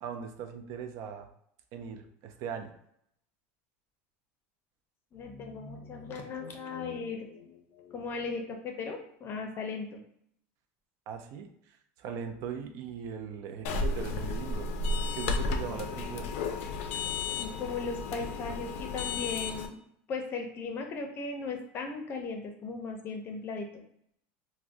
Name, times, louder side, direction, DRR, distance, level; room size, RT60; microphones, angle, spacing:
voice 1, 0.0-1.3 1.7-2.7 11.1-14.7 15.1-16.3, right 7 dB, 50° right, 5 dB, 0.4 m, -39 dB
voice 2, 5.1-10.0 17.4-19.8 20.1-23.8, left 4 dB, 35° left, 4 dB, 0.6 m, -37 dB
sound 1, 13.6-19.7, left 3 dB, 80° left, 0.4 m, -33 dB
3.5 x 2.1 x 2.5 m, 0.70 s
supercardioid pair, 140°, 7 cm